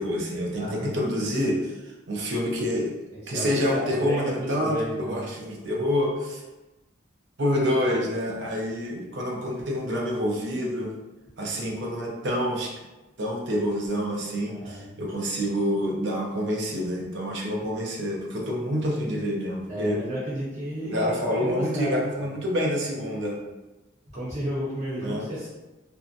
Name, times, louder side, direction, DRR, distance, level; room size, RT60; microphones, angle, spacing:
voice 1, 0.0-3.0 3.3-6.4 7.4-10.9 11.4-12.7 13.2-20.0 20.8-23.4 25.0-25.3, equal, 65° right, -2 dB, 0.5 m, -27 dB
voice 2, 0.5-0.9 3.2-5.2 14.5-15.0 19.7-22.3 24.1-25.5, equal, 40° right, -10 dB, 0.8 m, -33 dB
2.6 x 2.1 x 2.4 m, 1.1 s
head